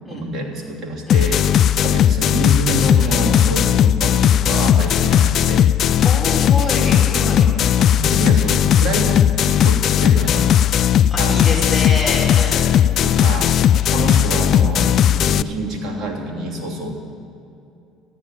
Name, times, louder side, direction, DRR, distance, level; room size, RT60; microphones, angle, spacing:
voice 1, 0.1-5.7 7.1-7.3 7.8-10.6 11.2-11.6 12.3-12.5 13.0-13.6 13.9-16.9, right 1 dB, 45° right, -2 dB, 3.2 m, -26 dB
sound 1, 1.1-15.4, left 10 dB, 55° left, 0.4 m, -16 dB
voice 2, 6.0-7.5 11.1-12.7 14.0-14.2, left 2 dB, ahead, -4 dB, 5.1 m, -27 dB
14.0 x 11.0 x 9.2 m, 2.6 s
supercardioid pair, 95°, 0 cm